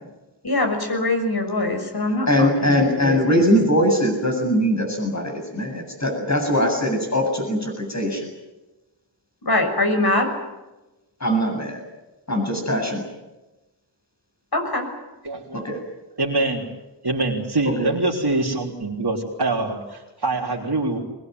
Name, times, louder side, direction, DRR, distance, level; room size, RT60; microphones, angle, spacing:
voice 1, 0.4-3.5 9.4-10.3 14.5-14.9, left 2 dB, 55° left, 5 dB, 6.5 m, -23 dB
voice 2, 2.1-8.3 11.2-11.8 12.3-13.0 15.5-15.8 17.8-17.9, equal, 40° left, 2 dB, 7.9 m, -21 dB
voice 3, 15.2-15.6 16.2-16.6 17.0-21.0, right 2 dB, 60° right, -4 dB, 3.6 m, -24 dB
24.0 x 21.5 x 9.4 m, 1.0 s
wide cardioid pair, 65°, 43 cm